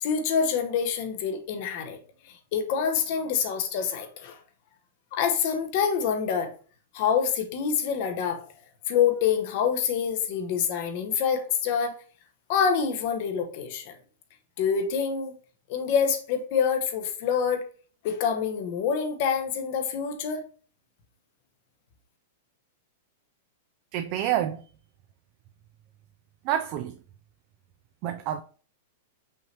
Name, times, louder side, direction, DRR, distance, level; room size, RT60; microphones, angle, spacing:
voice 1, 0.0-2.0 2.2-4.4 5.1-6.5 6.9-8.5 8.9-11.9 12.5-14.0 14.6-15.3 15.7-17.6 18.0-20.4, left 7 dB, 50° left, 0.9 m, -26 dB
voice 2, 23.9-24.6 26.4-27.0 28.0-28.4, right 11 dB, 45° right, 0.3 m, -28 dB
5.5 x 2.9 x 3.2 m
hypercardioid pair, 135°, 0 cm